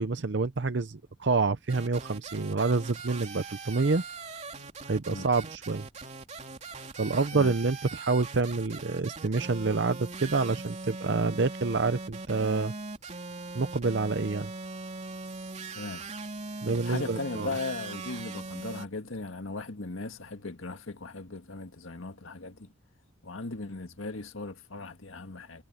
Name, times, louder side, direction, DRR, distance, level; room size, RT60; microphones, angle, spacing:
voice 1, 0.0-4.0 4.8-5.9 7.0-12.7 13.5-14.5 16.6-17.5, right 3 dB, 60° right, 0.7 m, -27 dB
sound 1, 1.7-18.9, right 3 dB, 35° right, 3.1 m, -41 dB
voice 2, 15.7-16.1 16.8-22.7 23.2-25.6, left 3 dB, 85° left, 1.8 m, -38 dB
head